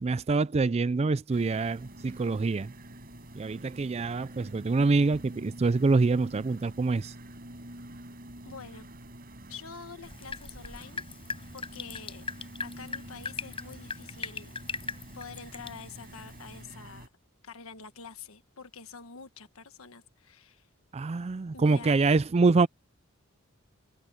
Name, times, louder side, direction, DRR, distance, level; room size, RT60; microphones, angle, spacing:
voice 1, 0.0-2.7 3.4-7.1 20.9-22.7, right 3 dB, 30° right, 0.4 m, -25 dB
sound 1, 1.3-17.1, right 1 dB, 45° right, 5.1 m, -47 dB
voice 2, 8.4-8.9 9.5-11.0 11.5-12.2 12.6-14.5 15.1-17.1 17.4-20.7 21.5-22.0, left 5 dB, 80° left, 1.4 m, -46 dB
Drip, 10.0-16.6, left 4 dB, 25° left, 4.9 m, -40 dB
head